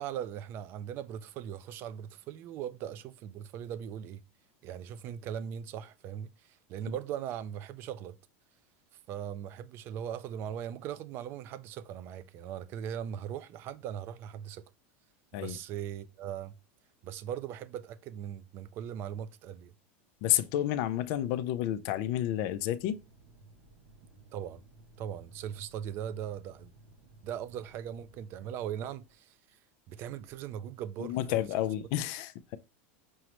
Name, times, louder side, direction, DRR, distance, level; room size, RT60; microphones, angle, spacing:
voice 1, 0.0-4.2 4.6-8.1 9.1-14.6 15.3-16.6 17.0-19.7 24.3-24.6 25.0-26.7 27.2-29.6 29.9-31.4, right 9 dB, 35° right, 0.3 m, -39 dB
voice 2, 20.2-23.0 31.0-32.6, left 12 dB, 50° left, 0.4 m, -30 dB
sound 1, 22.7-29.1 29.9-30.5, right 2 dB, 55° right, 0.7 m, -58 dB
6.2 x 2.1 x 2.9 m
supercardioid pair, 160°, 7 cm